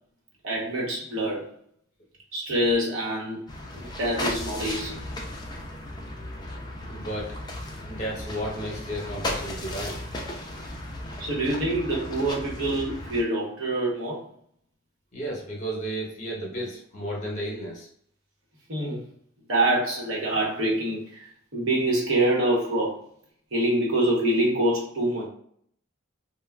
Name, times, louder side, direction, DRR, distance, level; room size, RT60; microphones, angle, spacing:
voice 1, 0.4-1.5 2.3-3.5 3.7-5.1 11.2-14.3 18.7-19.1 19.5-23.0 23.5-25.3, right 1 dB, 70° right, -3 dB, 0.9 m, -25 dB
sound 1, 3.5-13.2, left 1 dB, 20° left, 0.4 m, -35 dB
voice 2, 6.8-7.4 7.9-10.0 15.1-17.9, right 1 dB, 35° left, -2 dB, 0.9 m, -33 dB
3.2 x 2.1 x 2.2 m, 0.63 s
head